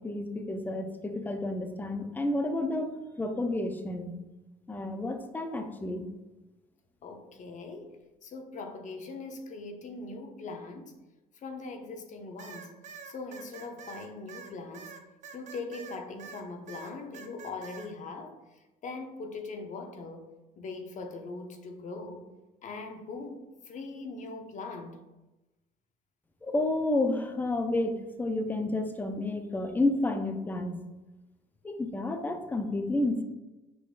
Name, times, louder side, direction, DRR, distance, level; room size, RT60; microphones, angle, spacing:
voice 1, 0.0-4.1 4.7-6.1 26.4-30.8 31.6-33.2, left 2 dB, 10° left, 0.5 m, -30 dB
voice 2, 7.0-7.9 8.2-11.0 11.4-12.7 13.0-14.9 15.3-20.3 20.6-22.3 22.6-25.0, left 3 dB, 50° left, 0.7 m, -41 dB
sound 1, 12.4-16.4 16.7-17.9, right 6 dB, 45° right, 0.6 m, -46 dB
6.0 x 3.6 x 2.4 m
cardioid pair, 110°, 17 cm